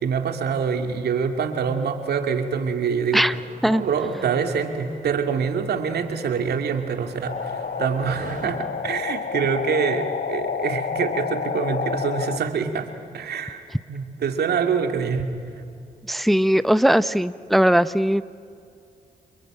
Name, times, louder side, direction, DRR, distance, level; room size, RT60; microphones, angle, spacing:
voice 1, 0.0-3.2 3.6-12.9 13.1-13.6 13.9-15.3, right 6 dB, 75° right, 6 dB, 2.3 m, -25 dB
sound 1, 3.3-8.5, right 4 dB, 55° right, 5.0 m, -43 dB
sound 2, 7.3-12.4, left 6 dB, 60° left, 1.2 m, -29 dB
voice 2, 16.1-18.2, equal, ahead, 15 dB, 0.7 m, -19 dB
29.5 x 22.5 x 8.9 m, 2.4 s
supercardioid pair, 45°, 17 cm